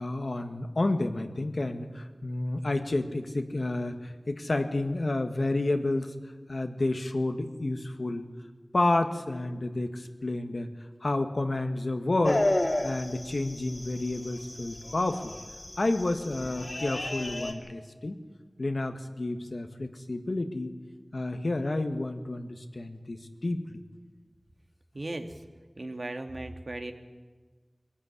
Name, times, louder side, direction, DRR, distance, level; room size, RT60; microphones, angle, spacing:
voice 1, 0.0-6.1 6.5-8.2 8.7-10.7 11.0-12.4 12.8-15.3 15.8-18.2 18.6-20.7 21.1-23.8, left 2 dB, 80° left, 6 dB, 1.6 m, -30 dB
sound 1, 12.2-17.5, left 1 dB, 45° left, 2.9 m, -32 dB
voice 2, 24.9-25.3 25.8-26.9, right 2 dB, 65° right, 5 dB, 1.9 m, -36 dB
22.0 x 15.0 x 9.8 m, 1.4 s
wide cardioid pair, 45°, 0 cm